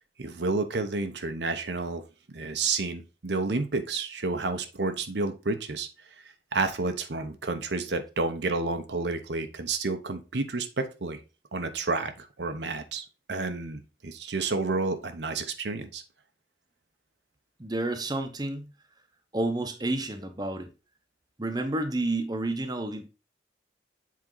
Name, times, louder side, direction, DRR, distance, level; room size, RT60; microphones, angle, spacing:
voice 1, 0.2-2.0 2.3-5.9 6.2-11.2 11.5-16.0, right 3 dB, 75° right, 0.9 m, -30 dB
voice 2, 17.6-18.7 19.3-20.7 21.4-23.1, right 2 dB, 20° right, 0.9 m, -30 dB
7.5 x 4.3 x 3.9 m
head